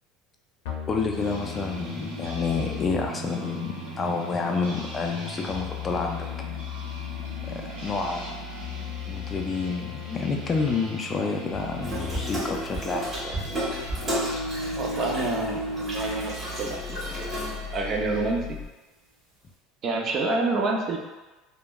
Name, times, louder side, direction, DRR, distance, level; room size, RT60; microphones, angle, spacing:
sound 1, 0.6-18.6, left 7 dB, 80° left, 0.5 m, -39 dB
voice 1, 0.9-6.3 7.5-8.4 9.1-13.5, left 4 dB, 30° left, 2 dB, 0.3 m, -29 dB
sound 2, 1.1-18.3, equal, 80° right, 0.8 m, -38 dB
Water tap faucet / Sink (filling or washing), 11.8-17.9, equal, 25° right, 1.3 m, -33 dB
voice 2, 14.8-17.3 17.7-18.6 19.8-21.0, right 3 dB, 45° right, 1 dB, 0.4 m, -28 dB
3.0 x 2.1 x 2.2 m, 1.1 s
supercardioid pair, 115°, 0 cm